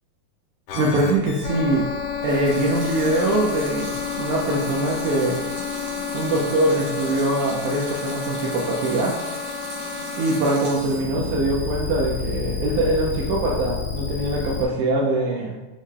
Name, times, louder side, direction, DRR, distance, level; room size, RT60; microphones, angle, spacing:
sound 1, 0.7-14.7, left 7 dB, 90° left, 2.2 m, -30 dB
voice 1, 0.7-1.9 2.2-5.4 6.1-9.1 10.1-15.6, right 2 dB, 80° right, -3 dB, 1.9 m, -23 dB
Water tap faucet / Sink (filling or washing) / Liquid, 2.2-11.1 11.5-12.2, right 1 dB, 55° right, 1.7 m, -37 dB
6.3 x 2.1 x 3.5 m, 1.0 s
omnidirectional pair, 3.7 m